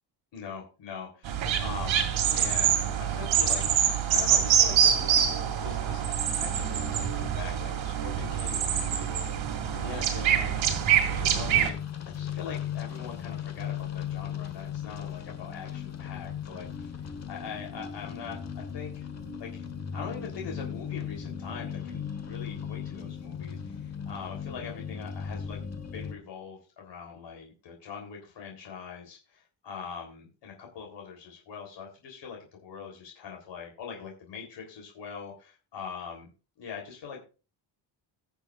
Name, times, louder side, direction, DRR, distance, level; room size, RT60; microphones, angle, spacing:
voice 1, 0.3-3.6 4.1-6.0 6.3-11.8 12.2-16.9 17.3-19.1 19.4-19.6 19.9-36.3 36.6-37.2, left 6 dB, 70° left, 0 dB, 3.4 m, -42 dB
sound 1, 1.2-11.7, right 9 dB, 85° right, 2.4 m, -25 dB
sound 2, 9.6-26.2, left 8 dB, 35° left, 1.3 m, -37 dB
20.5 x 7.0 x 2.4 m, 0.33 s
cardioid pair, 165°, 45 cm